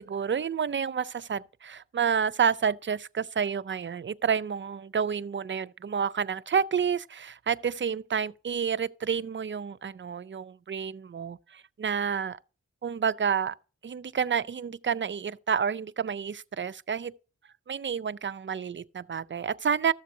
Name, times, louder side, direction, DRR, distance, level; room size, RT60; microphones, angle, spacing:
voice 1, 0.0-12.4 12.8-13.6 13.8-17.1 17.7-19.9, right 7 dB, 35° right, 0.5 m, -29 dB
13.5 x 7.3 x 2.7 m
cardioid pair, 60°, 32 cm